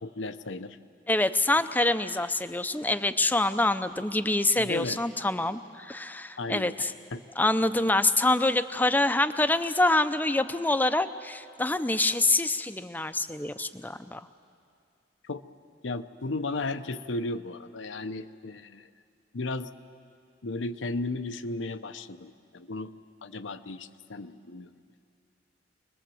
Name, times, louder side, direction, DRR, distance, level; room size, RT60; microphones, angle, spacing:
voice 1, 0.0-0.8 4.6-5.0 6.4-6.7 7.1-7.2 15.2-15.4 15.8-18.9 19.3-19.7 20.4-22.9 23.2-24.7, left 2 dB, 80° left, 10 dB, 0.8 m, -34 dB
voice 2, 1.1-6.9 7.4-14.2, left 2 dB, 10° left, 11 dB, 0.6 m, -26 dB
26.0 x 20.5 x 7.8 m, 2.4 s
head